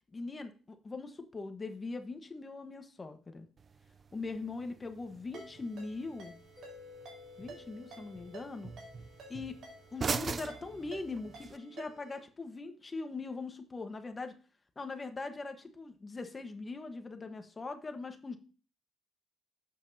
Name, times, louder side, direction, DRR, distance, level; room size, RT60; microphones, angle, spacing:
voice 1, 0.1-3.5 4.1-6.3 7.4-8.7 9.3-9.6 9.9-14.3 14.8-18.4, left 3 dB, 30° left, 7 dB, 1.2 m, -41 dB
sound 1, 3.6-11.6, right 5 dB, 40° right, 0.4 m, -43 dB
Ringtone, 5.3-12.2, right 3 dB, 70° right, 4.6 m, -53 dB
Mallet percussion, 6.6-10.0, left 5 dB, 10° left, 5.9 m, -55 dB
12.0 x 7.7 x 2.8 m, 0.37 s
cardioid pair, 90°, 0 cm